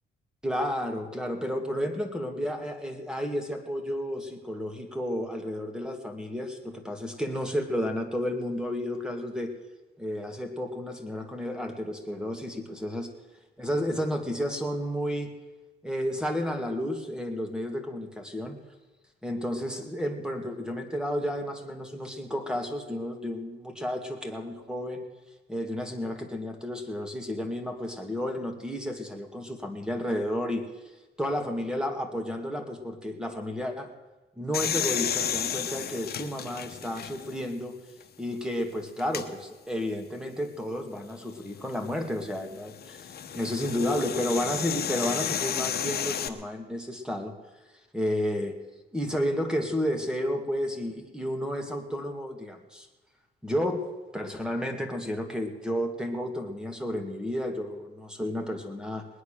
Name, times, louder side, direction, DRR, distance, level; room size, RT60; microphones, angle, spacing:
voice 1, 0.4-9.5 10.0-13.1 13.6-15.3 15.8-18.6 19.2-25.1 25.5-30.6 31.2-33.9 34.4-37.8 38.2-43.1 43.3-47.3 47.9-48.6 48.9-52.9 53.4-59.1, equal, 5° right, 5 dB, 2.3 m, -32 dB
sound 1, 34.5-37.5 38.0-38.1 39.0-39.3 41.4-46.3, left 8 dB, 50° left, 1.2 m, -32 dB
20.0 x 9.7 x 6.7 m, 1.1 s
cardioid pair, 90°, 20 cm